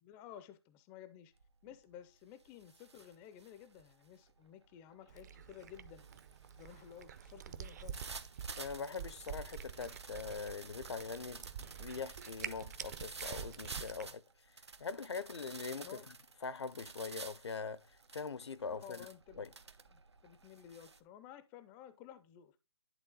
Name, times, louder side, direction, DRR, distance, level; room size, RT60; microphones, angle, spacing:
voice 1, 0.0-1.3 1.6-6.1 6.6-8.0 15.8-16.1 18.7-19.4 19.9-22.6, left 10 dB, 15° left, 0.4 m, -54 dB
sound 1, 1.4-1.7 2.1-21.0, right 4 dB, 90° right, 0.9 m, -52 dB
Cat, 5.1-14.1, right 8 dB, 40° right, 0.6 m, -48 dB
voice 2, 8.6-14.2 14.8-16.1 16.4-19.1 19.4-19.5, left 5 dB, 80° left, 0.6 m, -43 dB
11.0 x 3.6 x 3.7 m
hypercardioid pair, 150°, 14 cm